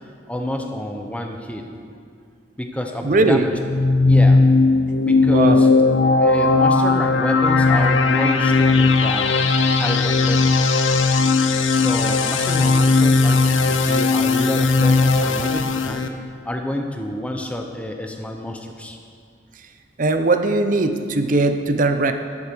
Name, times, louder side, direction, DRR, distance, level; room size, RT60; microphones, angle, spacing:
voice 1, 0.3-1.7 2.6-3.5 4.0-4.4 5.0-5.7 6.2-10.8 11.7-16.1 16.5-19.0, left 1 dB, 5° left, 3 dB, 0.7 m, -28 dB
voice 2, 3.0-3.5 5.3-5.6 20.0-22.1, right 3 dB, 45° right, 8 dB, 0.6 m, -19 dB
sound 1, 3.5-16.1, left 3 dB, 75° left, 0.6 m, -17 dB
11.5 x 8.4 x 4.5 m, 2.3 s
head